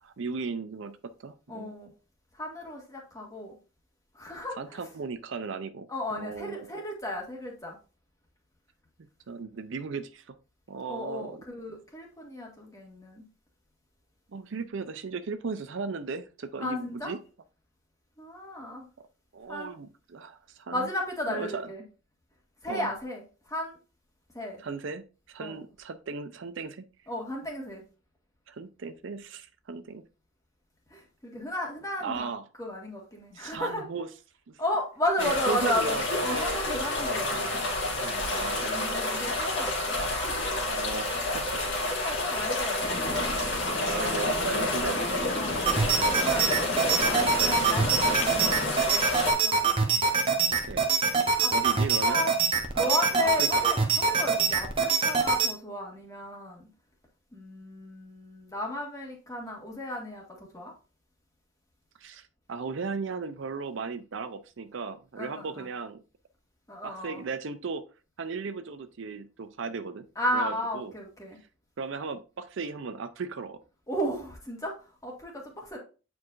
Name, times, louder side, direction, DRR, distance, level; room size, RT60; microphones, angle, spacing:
voice 1, 0.0-1.7 4.6-6.7 9.3-10.4 10.7-11.4 14.3-17.2 19.0-19.1 19.3-20.9 21.3-21.7 22.7-22.9 24.6-26.9 28.5-30.0 32.0-32.4 33.3-34.1 34.5-34.6 35.2-36.6 36.9-39.1 40.5-41.6 43.7-45.3 45.9-46.4 50.5-50.8 51.5-52.2 52.7-53.6 62.0-66.0 66.8-67.8 68.2-70.1 70.3-70.9 71.8-73.6, right 4 dB, 60° right, 10 dB, 0.5 m, -37 dB
voice 2, 1.5-1.9 2.3-3.6 4.1-4.8 5.9-7.8 10.9-13.2 16.6-17.1 18.2-18.9 19.5-19.8 20.7-21.8 22.6-23.8 24.3-24.6 25.4-25.6 27.1-27.8 30.9-32.3 32.6-33.8 34.6-37.6 38.6-40.7 41.1-41.4 41.7-41.8 42.0-43.4 45.3-50.0 51.1-52.3 52.8-56.7 57.3-60.2 60.5-60.7 65.2-65.7 66.7-67.2 70.1-71.4 73.9-75.8, left 1 dB, 15° left, 0 dB, 1.7 m, -34 dB
sound 1, 35.2-49.3, left 2 dB, 55° left, 2.1 m, -29 dB
sound 2, 42.8-48.7, left 2 dB, 30° left, 0.8 m, -36 dB
sound 3, 45.7-55.5, right 5 dB, 25° right, 0.9 m, -25 dB
8.4 x 4.7 x 2.5 m, 0.34 s
head